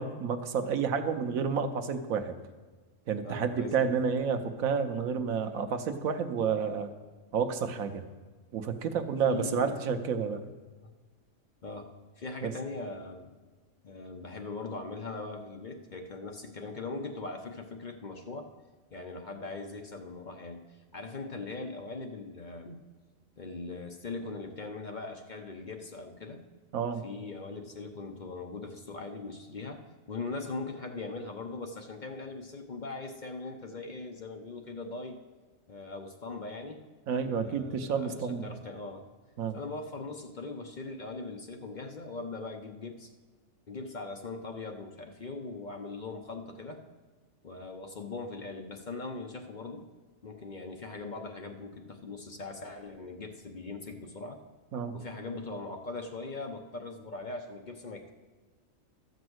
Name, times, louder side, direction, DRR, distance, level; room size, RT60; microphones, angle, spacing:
voice 1, 0.0-2.3 3.1-6.9 7.3-8.0 8.5-10.5 12.4-12.5 26.7-27.0 37.1-38.5 39.4-39.6 54.7-55.0, right 6 dB, 90° right, 8 dB, 1.3 m, -30 dB
voice 2, 3.2-3.9 9.3-9.8 11.6-13.3 13.8-18.5 18.9-22.8 23.4-26.4 27.0-35.2 35.7-36.8 37.2-39.1 39.5-43.1 43.7-46.8 47.4-49.9 50.2-54.4 54.9-58.1, left 3 dB, 40° left, 4 dB, 0.8 m, -40 dB
13.0 x 5.3 x 7.9 m, 1.3 s
omnidirectional pair, 1.4 m